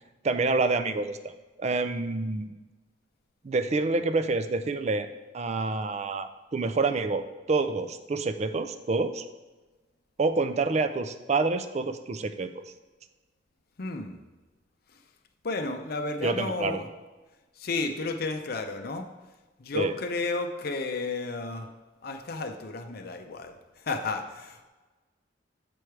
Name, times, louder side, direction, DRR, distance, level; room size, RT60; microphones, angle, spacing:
voice 1, 0.2-1.3 1.6-2.6 3.4-5.1 5.3-9.2 10.2-12.5 16.2-16.8 19.7-19.9, right 3 dB, 35° right, 9 dB, 0.4 m, -27 dB
voice 2, 13.8-14.2 15.4-16.9 17.6-19.1 19.6-21.7 22.0-23.6 23.8-24.7, left 3 dB, 55° left, 6 dB, 0.6 m, -32 dB
7.7 x 4.8 x 4.6 m, 1.2 s
head